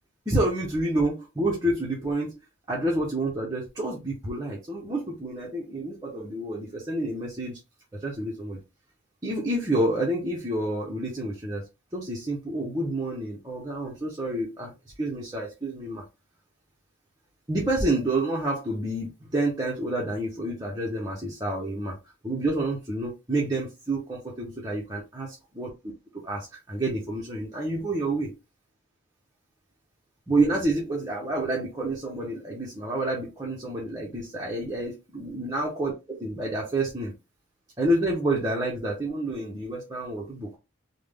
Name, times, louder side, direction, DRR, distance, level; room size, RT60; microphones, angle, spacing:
voice 1, 0.3-2.3 2.7-7.6 8.0-8.6 9.2-14.7 15.0-16.0 17.5-22.0 22.2-25.3 25.6-25.7 26.2-28.3 30.3-37.1 37.8-40.6, right 1 dB, 15° right, 0.7 m, -28 dB
3.4 x 2.2 x 3.4 m
head